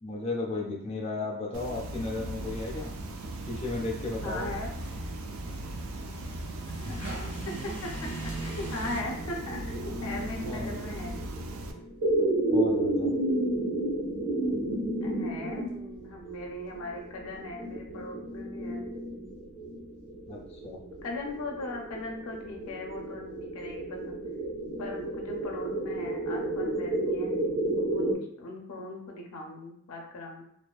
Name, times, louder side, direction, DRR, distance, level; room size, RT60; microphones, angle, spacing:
voice 1, 0.0-2.9 3.4-4.5 10.4-10.8 12.5-13.1 20.3-20.8, left 3 dB, 30° left, -3 dB, 0.4 m, -34 dB
sound 1, 1.5-11.7, right 2 dB, 70° right, 0.3 m, -38 dB
sound 2, 2.4-9.0, right 2 dB, 55° right, 0.8 m, -41 dB
voice 2, 4.2-4.7 6.7-7.1 7.8-11.1 15.0-18.8 21.0-24.2 24.8-27.5 27.8-30.4, left 2 dB, 85° left, 0 dB, 0.5 m, -39 dB
sound 3, 8.3-28.1, right 1 dB, 85° right, 0.7 m, -32 dB
2.4 x 2.2 x 2.3 m, 0.69 s
head